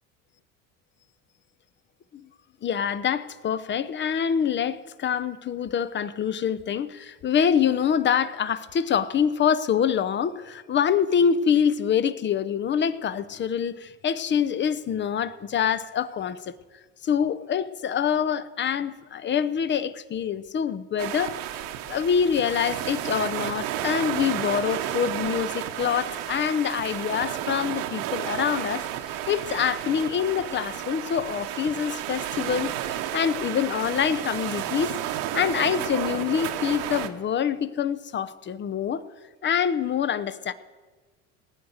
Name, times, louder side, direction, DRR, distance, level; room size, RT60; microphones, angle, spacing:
voice 1, 2.6-16.5 17.0-21.4 21.9-35.0 35.3-39.0 39.4-40.5, left 8 dB, 30° left, 0.7 m, -25 dB
sound 1, 21.0-37.1, right 12 dB, 70° right, 1.2 m, -32 dB
18.5 x 8.1 x 6.4 m
supercardioid pair, 90°, 38 cm